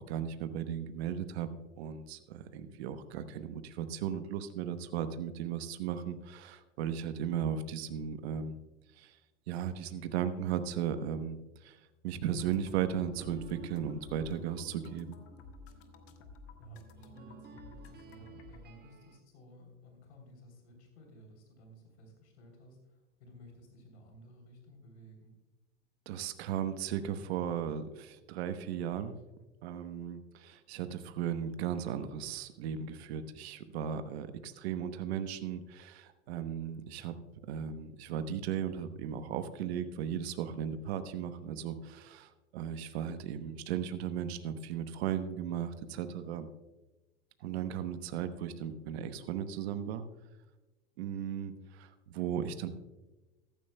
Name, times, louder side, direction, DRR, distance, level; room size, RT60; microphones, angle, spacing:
voice 1, 0.0-1.5 1.8-8.6 9.0-9.2 9.5-11.8 12.0-15.2 26.1-29.2 29.6-37.1 37.5-46.5 47.4-50.0 51.0-52.7, right 9 dB, 65° right, 10 dB, 1.1 m, -36 dB
sound 1, 12.2-18.6, left 5 dB, 40° left, 1.5 m, -54 dB
sound 2, 13.2-19.2, right 5 dB, 30° right, 1.4 m, -54 dB
voice 2, 16.6-25.4, equal, 70° left, 3 dB, 3.3 m, -55 dB
15.0 x 14.0 x 2.2 m, 1.1 s
hypercardioid pair, 100°, 34 cm